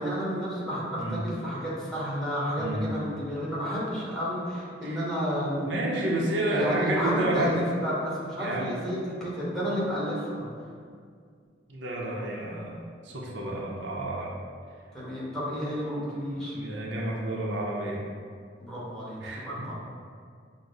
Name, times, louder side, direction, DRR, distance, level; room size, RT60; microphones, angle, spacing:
voice 1, 0.0-5.6 6.5-10.5 14.9-16.5 18.6-19.7, equal, 5° left, -8 dB, 1.1 m, -31 dB
voice 2, 5.6-7.8 8.4-8.7 11.7-14.3 16.3-18.0 19.2-19.7, right 1 dB, 85° right, -3 dB, 0.7 m, -30 dB
6.1 x 2.0 x 3.9 m, 2.1 s
head